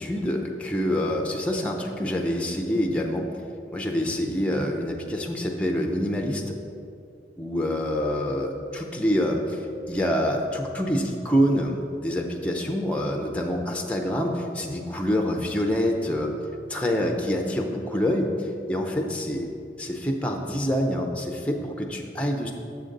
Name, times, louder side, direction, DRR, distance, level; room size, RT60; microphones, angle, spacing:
voice 1, 0.0-3.2 3.7-6.5 7.4-11.8 12.0-16.3 16.7-19.5 19.8-22.5, equal, 5° left, 1 dB, 0.5 m, -26 dB
7.2 x 6.5 x 3.8 m, 2.5 s
head